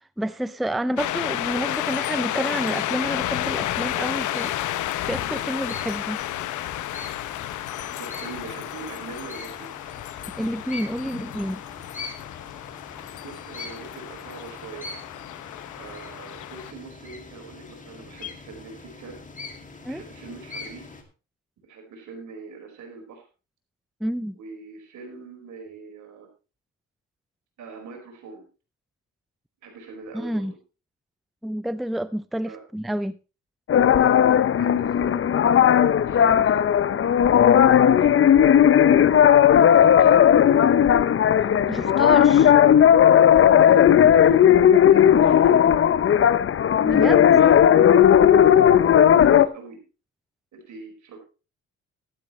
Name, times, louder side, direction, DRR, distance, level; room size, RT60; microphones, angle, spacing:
voice 1, 0.2-4.5 4.8-6.2 10.4-11.6 19.8-20.0 24.0-24.3 30.1-30.5 31.4-33.2 41.7-42.5 46.8-47.2, right 1 dB, ahead, 0.5 m, -29 dB
sound 1, 1.0-16.7, left 14 dB, 80° left, 0.8 m, -31 dB
sound 2, 2.5-21.0, left 4 dB, 25° left, 2.5 m, -43 dB
voice 2, 8.0-9.7 13.2-14.9 15.7-19.1 19.9-20.9 21.6-23.3 24.3-26.3 27.6-28.5 29.6-30.5 32.4-32.6 34.5-37.1 37.7-40.2 41.4-42.5 43.6-43.8 44.1-45.6 46.7-47.9 48.3-49.8 50.5-51.2, right 4 dB, 75° right, 5.0 m, -42 dB
sound 3, 33.7-49.5, left 9 dB, 45° left, 0.7 m, -16 dB
14.5 x 12.0 x 3.2 m
cardioid pair, 90°, 30 cm